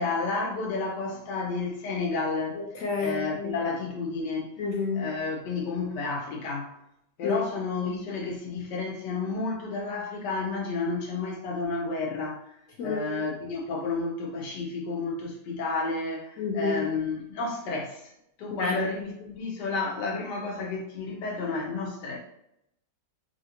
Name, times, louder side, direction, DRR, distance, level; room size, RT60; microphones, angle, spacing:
voice 1, 0.0-2.6 3.0-4.5 4.9-6.7 7.2-12.5 12.8-18.1 18.4-22.2, left 3 dB, 85° left, 0 dB, 1.4 m, -31 dB
voice 2, 2.5-3.5 4.6-5.1 7.2-7.4 12.8-13.2 16.4-16.7 18.6-18.9, left 4 dB, 65° left, 0 dB, 0.9 m, -29 dB
3.3 x 2.5 x 2.8 m, 0.76 s
omnidirectional pair, 1.8 m